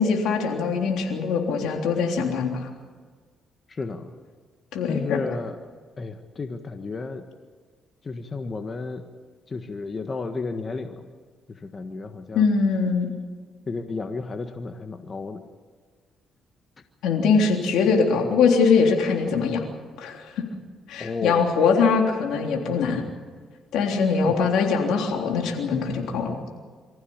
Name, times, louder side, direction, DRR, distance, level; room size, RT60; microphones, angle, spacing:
voice 1, 0.0-2.7 4.7-5.2 12.3-13.1 17.0-19.6 20.0-20.4 20.9-23.0 23.7-26.4, left 5 dB, 85° left, 2 dB, 3.4 m, -22 dB
voice 2, 3.7-4.1 4.9-5.6 6.0-7.2 8.0-9.0 9.5-11.1 11.5-12.5 13.7-15.4 21.0-21.5 24.3-24.4, left 4 dB, 35° left, 6 dB, 1.5 m, -32 dB
25.0 x 15.0 x 8.8 m, 1.5 s
cardioid pair, 90°, 0 cm